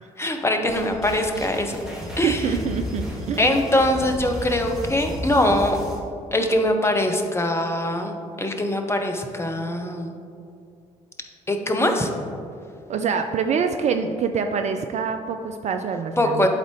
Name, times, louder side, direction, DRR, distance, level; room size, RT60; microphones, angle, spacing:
voice 1, 0.2-1.8 2.2-2.4 3.4-5.8 6.3-10.1 11.5-12.1 16.2-16.5, left 1 dB, 15° left, 4 dB, 0.8 m, -22 dB
sound 1, 0.7-6.0, equal, ahead, 1.7 m, -33 dB
voice 2, 2.2-3.5 12.9-16.5, right 6 dB, 40° right, 7 dB, 0.4 m, -25 dB
11.5 x 4.0 x 3.1 m, 2.5 s
figure-of-eight pair, 45°, 18 cm